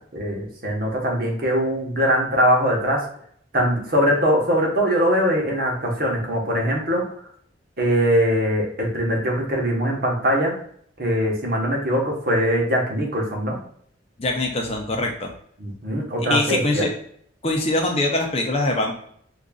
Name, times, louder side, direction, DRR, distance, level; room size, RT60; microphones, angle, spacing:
voice 1, 0.1-3.0 3.5-7.0 7.8-10.5 11.0-13.6 15.6-16.9, equal, 50° right, -1 dB, 1.1 m, -21 dB
voice 2, 14.2-15.3 16.2-16.9 17.4-18.9, left 2 dB, 30° left, 2 dB, 0.6 m, -23 dB
5.1 x 2.5 x 2.3 m, 0.62 s
head